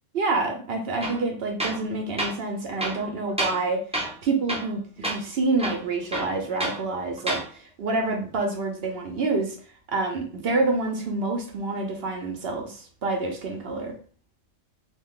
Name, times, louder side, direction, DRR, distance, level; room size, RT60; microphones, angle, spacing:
voice 1, 0.1-3.8 4.2-9.6 9.9-13.9, right 3 dB, 60° right, 3 dB, 0.6 m, -27 dB
Tools, 1.0-1.2 1.6-1.9 2.2-2.4 2.8-3.7 3.9-4.2 4.5-4.8 5.0-5.2 5.6-6.8 7.2-7.5, right 1 dB, 10° right, 0.3 m, -29 dB
2.7 x 2.2 x 3.7 m, 0.41 s
omnidirectional pair, 1.5 m